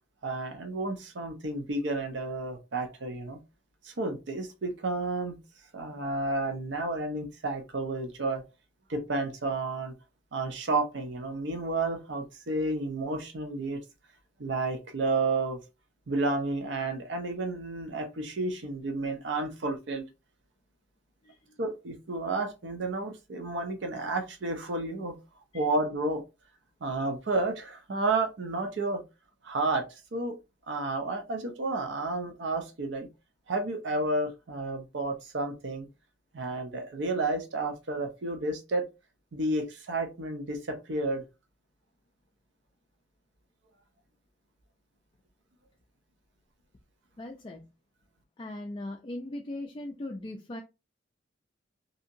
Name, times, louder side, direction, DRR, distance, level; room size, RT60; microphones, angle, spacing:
voice 1, 0.2-3.4 3.8-5.4 5.7-8.4 8.9-9.9 10.3-13.8 14.4-15.6 16.1-20.1 21.6-25.2 25.5-26.2 26.8-29.0 29.4-30.4 30.7-33.1 33.5-35.9 36.3-38.8 39.3-41.2, right 2 dB, 65° right, 0.6 m, -31 dB
voice 2, 21.2-21.6 25.5-25.7 47.2-47.7 48.4-50.6, left 1 dB, 25° left, 0.3 m, -39 dB
2.7 x 2.7 x 2.6 m
head